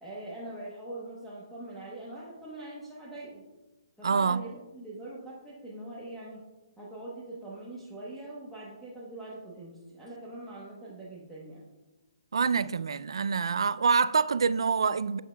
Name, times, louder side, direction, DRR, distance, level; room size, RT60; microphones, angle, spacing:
voice 1, 0.0-3.4 4.0-6.5 6.8-11.6, right 2 dB, ahead, 1.0 m, -43 dB
voice 2, 4.0-4.4 12.3-15.2, right 5 dB, 80° right, 0.3 m, -26 dB
11.5 x 8.4 x 2.3 m
hypercardioid pair, 175°, 3 cm